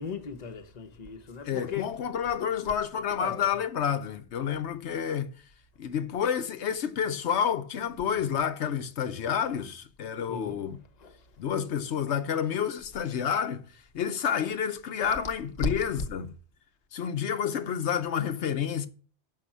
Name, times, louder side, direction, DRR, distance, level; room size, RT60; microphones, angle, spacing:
voice 1, 0.0-2.0 3.0-3.6 4.5-4.7 8.0-8.3 10.3-10.6 11.0-11.2 15.6-16.0, left 4 dB, 40° left, 1.0 m, -36 dB
voice 2, 1.4-5.4 5.8-10.8 11.4-13.7 13.9-16.3 16.9-18.9, left 8 dB, 80° left, 1.0 m, -29 dB
6.7 x 5.6 x 7.2 m
omnidirectional pair, 1.1 m